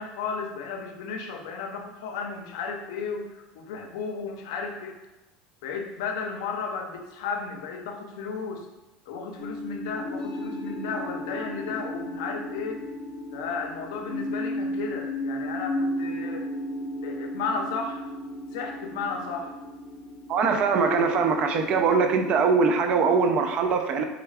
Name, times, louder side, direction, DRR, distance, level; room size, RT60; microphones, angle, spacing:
voice 1, 0.0-4.9 5.6-8.7 9.1-12.9 13.3-16.5 17.0-18.1 18.5-19.5, left 5 dB, 85° left, 3 dB, 0.5 m, -34 dB
sound 1, 9.4-22.4, left 1 dB, 35° left, 0.6 m, -34 dB
voice 2, 20.3-24.0, right 5 dB, 45° right, 6 dB, 0.4 m, -22 dB
3.5 x 2.3 x 3.4 m, 1.1 s
supercardioid pair, 120°, 2 cm